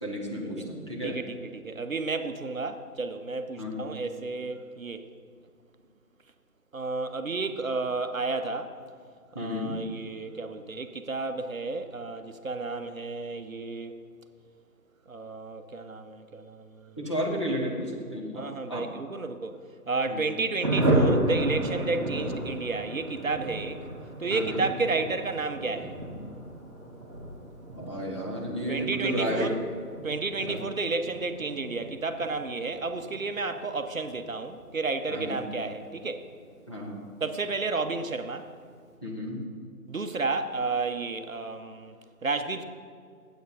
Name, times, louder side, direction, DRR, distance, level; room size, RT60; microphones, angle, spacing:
voice 1, 0.0-1.2 3.6-3.8 9.3-9.8 17.0-18.9 20.1-20.2 24.3-24.6 27.7-29.5 30.4-30.6 35.1-35.4 36.7-37.1 39.0-39.4, equal, 20° left, -4 dB, 0.8 m, -32 dB
voice 2, 1.0-5.0 6.7-8.7 9.4-13.9 15.1-17.0 18.3-19.6 19.9-23.8 24.2-26.0 28.7-29.6 30.0-36.3 37.2-38.5 39.9-42.6, right 3 dB, 60° right, 8 dB, 0.7 m, -32 dB
Thunder, 20.6-36.7 37.0-37.1 37.4-37.5 37.8-38.2, right 1 dB, 20° right, 1.1 m, -33 dB
9.2 x 8.1 x 5.0 m, 2.1 s
figure-of-eight pair, 155°, 46 cm